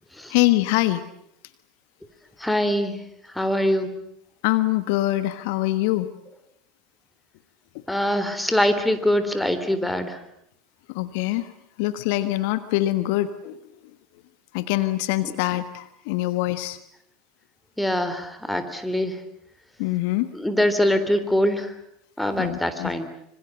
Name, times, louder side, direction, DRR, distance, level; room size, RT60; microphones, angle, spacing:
voice 1, 0.3-1.0 4.4-6.1 10.9-11.5 11.8-13.6 14.5-16.8 19.8-20.3 22.4-22.9, left 17 dB, 60° left, 12 dB, 1.3 m, -24 dB
voice 2, 2.4-3.0 3.3-3.9 7.9-10.2 17.8-19.2 20.3-21.8 22.2-23.1, left 1 dB, 5° left, 10 dB, 3.6 m, -23 dB
26.0 x 26.0 x 7.8 m, 0.76 s
figure-of-eight pair, 75°, 0 cm